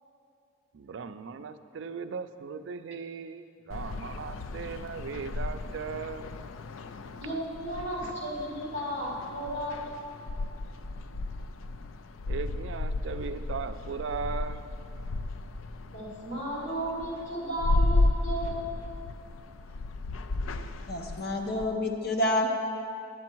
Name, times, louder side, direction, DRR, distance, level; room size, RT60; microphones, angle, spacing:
voice 1, 0.7-6.2 12.3-14.6, right 5 dB, 70° right, 10 dB, 0.4 m, -38 dB
sound 1, 3.7-21.7, left 2 dB, 90° left, 0.4 m, -33 dB
voice 2, 7.2-10.1 15.9-18.6, right 1 dB, 70° left, -5 dB, 2.5 m, -34 dB
voice 3, 20.9-22.5, left 1 dB, 50° left, 3 dB, 0.7 m, -28 dB
9.4 x 7.7 x 4.5 m, 2.4 s
head